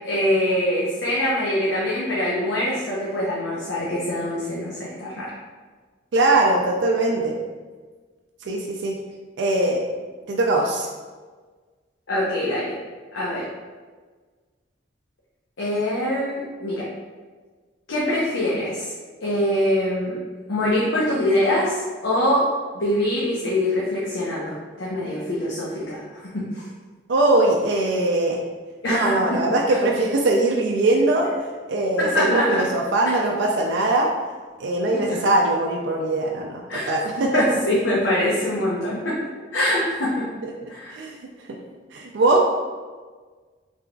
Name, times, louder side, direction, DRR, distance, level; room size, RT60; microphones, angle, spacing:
voice 1, 0.0-5.3 12.1-12.7 13.1-13.5 15.6-16.9 17.9-18.9 19.2-20.2 20.5-21.7 22.0-26.0 26.3-26.6 28.8-29.4 29.7-29.8 32.0-32.6 33.0-33.1 35.1-35.2 36.7-36.9 37.3-39.2 39.5-40.3 40.7-41.0, left 1 dB, 90° left, -6 dB, 0.7 m, -24 dB
voice 2, 6.1-7.4 8.4-9.0 9.4-9.8 10.3-10.9 27.1-28.4 28.9-31.3 31.7-34.1 34.6-37.4 40.4-41.2 41.9-42.4, right 2 dB, 70° right, 0 dB, 0.4 m, -21 dB
3.8 x 3.3 x 2.2 m, 1.4 s
head